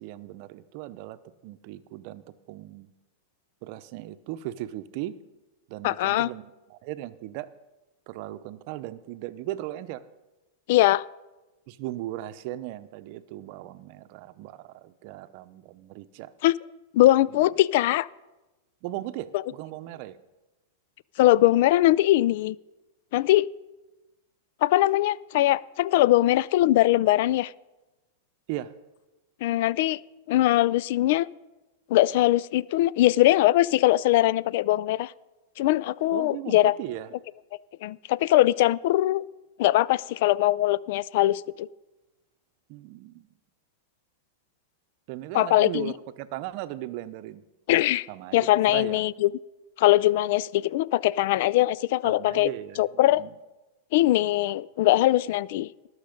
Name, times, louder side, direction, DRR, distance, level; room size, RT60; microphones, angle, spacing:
voice 1, 0.0-2.2 2.5-2.9 3.6-5.2 5.7-7.5 8.1-10.0 11.7-16.3 17.3-17.4 18.8-20.2 28.5-28.7 36.1-37.1 42.7-43.3 45.1-47.4 48.1-49.0 52.0-53.3, right 14 dB, 55° right, 13 dB, 0.7 m, -37 dB
voice 2, 5.8-6.3 10.7-11.0 16.4-16.5 16.9-18.1 19.3-19.4 21.2-22.6 23.1-23.5 24.6-27.5 29.4-30.0 30.3-31.3 31.9-35.1 35.6-36.8 37.8-39.3 39.6-41.7 45.3-45.9 47.7-48.1 48.3-49.3 49.8-52.5 52.8-53.2 53.9-55.9, left 15 dB, 60° left, 21 dB, 0.3 m, -21 dB
19.5 x 6.5 x 5.2 m, 1.1 s
hypercardioid pair, 120°, 0 cm